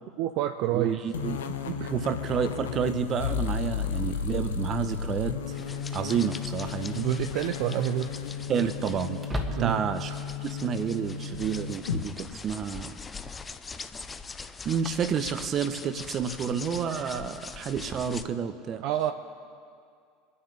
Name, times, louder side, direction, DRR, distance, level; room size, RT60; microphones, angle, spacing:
voice 1, 0.2-1.0 1.7-2.0 6.9-8.1 9.5-9.9 18.8-19.1, right 12 dB, 65° right, 7 dB, 0.5 m, -28 dB
voice 2, 0.7-1.4 1.9-5.3 5.9-7.0 8.5-9.2 9.5-10.2 10.4-13.0 14.6-18.8, right 7 dB, 45° right, 10 dB, 1.0 m, -30 dB
sound 1, 1.1-12.0, left 7 dB, 85° left, 0.7 m, -34 dB
sound 2, 5.5-18.2, left 4 dB, 25° left, 0.7 m, -42 dB
sound 3, 9.2-10.1, equal, 20° right, 1.6 m, -34 dB
23.0 x 9.7 x 3.4 m, 2.3 s
hypercardioid pair, 80°, 0 cm